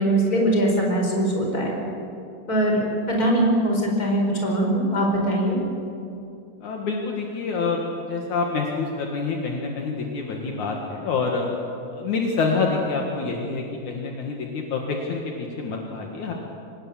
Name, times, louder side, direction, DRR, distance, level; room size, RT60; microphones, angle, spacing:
voice 1, 0.0-1.7 2.5-5.6, right 1 dB, 25° left, 0 dB, 4.9 m, -21 dB
voice 2, 6.6-11.5 11.9-16.3, left 4 dB, 65° left, 0 dB, 3.1 m, -27 dB
25.0 x 19.5 x 7.5 m, 2.6 s
omnidirectional pair, 3.7 m